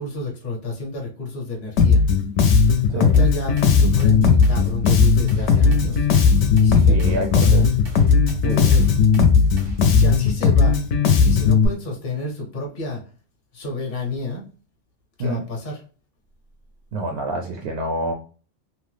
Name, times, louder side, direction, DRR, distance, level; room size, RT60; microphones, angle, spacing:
voice 1, 0.0-2.0 2.9-6.1 6.6-7.7 8.5-8.9 9.9-10.9 11.2-13.0 13.5-14.4 15.2-15.8, left 2 dB, 50° left, -1 dB, 0.9 m, -30 dB
Bass guitar, 1.8-11.7, left 5 dB, 75° left, 0.9 m, -16 dB
voice 2, 2.9-3.2 6.9-7.7 8.4-8.7 15.2-15.4 16.9-18.1, right 2 dB, 70° right, 3 dB, 0.8 m, -27 dB
sound 1, 3.1-10.0, left 2 dB, 85° right, 1.4 m, -31 dB
2.9 x 2.0 x 3.1 m, 0.38 s
omnidirectional pair, 1.2 m